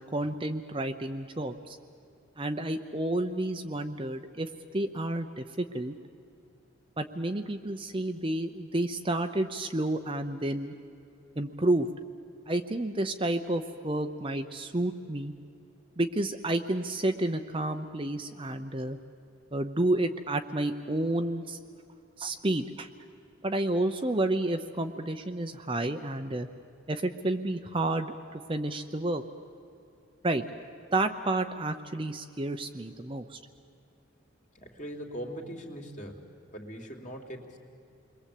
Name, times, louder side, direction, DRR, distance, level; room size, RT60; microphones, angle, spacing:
voice 1, 0.0-1.8 2.4-5.9 7.0-10.7 11.4-11.9 12.5-15.3 16.0-19.0 19.5-21.6 22.2-22.9 23.4-26.5 26.9-29.2 30.2-30.4 30.9-33.4, right 1 dB, 25° right, 6 dB, 0.8 m, -30 dB
voice 2, 34.5-36.2 36.5-37.6, equal, 35° left, 2 dB, 2.9 m, -40 dB
29.0 x 22.0 x 8.5 m, 2.7 s
head